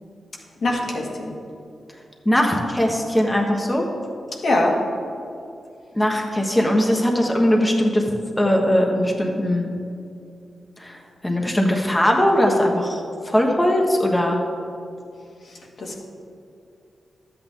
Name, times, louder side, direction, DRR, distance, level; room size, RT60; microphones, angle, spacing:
voice 1, 0.6-1.3 4.4-4.8 15.5-16.0, left 1 dB, 65° left, -2 dB, 1.8 m, -23 dB
voice 2, 2.2-3.8 5.9-8.1 8.4-9.7 10.8-14.4, equal, 15° left, 0 dB, 1.3 m, -20 dB
12.0 x 8.4 x 3.7 m, 2.5 s
cardioid pair, 70°, 0 cm